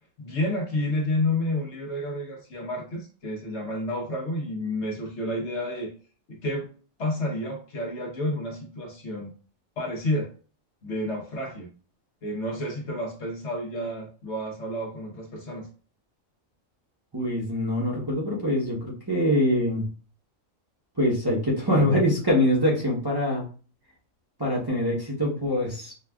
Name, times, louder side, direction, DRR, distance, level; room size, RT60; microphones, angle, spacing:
voice 1, 0.2-5.9 6.3-6.7 7.0-9.3 9.8-10.3 10.8-11.7 12.2-15.7, left 1 dB, 60° left, -1 dB, 1.3 m, -30 dB
voice 2, 17.1-19.8 21.0-23.5 24.4-25.9, equal, 20° right, -5 dB, 0.8 m, -24 dB
5.8 x 2.4 x 2.3 m, 0.38 s
omnidirectional pair, 1.4 m